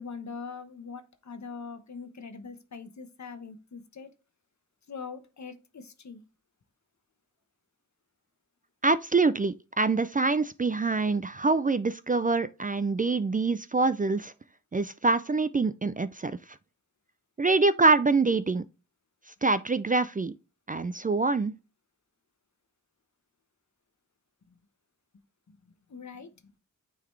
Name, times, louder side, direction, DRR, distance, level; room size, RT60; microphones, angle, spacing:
voice 1, 0.0-4.1 4.9-6.2 25.5-26.5, left 5 dB, 60° left, 1.1 m, -42 dB
voice 2, 8.8-14.3 14.7-16.3 17.4-18.6 19.4-20.3 20.7-21.5, right 3 dB, 25° right, 0.4 m, -25 dB
9.0 x 4.0 x 3.2 m
wide cardioid pair, 65°, 32 cm